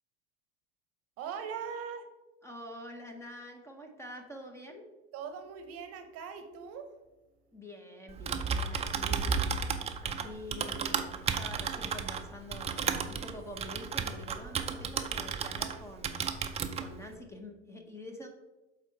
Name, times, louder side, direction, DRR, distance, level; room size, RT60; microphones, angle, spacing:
voice 1, 1.2-2.0 5.1-6.9, right 7 dB, 45° right, 8 dB, 0.9 m, -40 dB
voice 2, 2.4-4.9 7.5-16.2 16.5-18.3, left 1 dB, 10° left, 3 dB, 0.9 m, -46 dB
Typing, 8.1-15.8 16.0-16.9, right 6 dB, 20° right, 0.4 m, -33 dB
7.5 x 4.1 x 4.6 m, 1.1 s
supercardioid pair, 115°, 33 cm